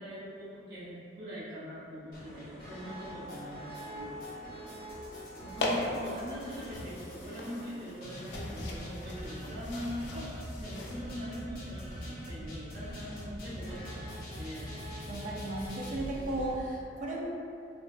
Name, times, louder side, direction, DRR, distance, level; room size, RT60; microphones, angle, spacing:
voice 1, 0.0-4.7 5.2-10.3 10.6-14.0 14.4-14.7 16.2-16.4, equal, 60° right, -12 dB, 0.9 m, -42 dB
sound 1, 2.1-16.5, equal, 55° left, 0.8 m, -43 dB
sound 2, 5.5-11.0, left 2 dB, 85° left, 0.4 m, -39 dB
voice 2, 15.0-17.3, right 1 dB, 45° right, -3 dB, 0.4 m, -35 dB
3.1 x 2.1 x 2.4 m, 2.4 s
head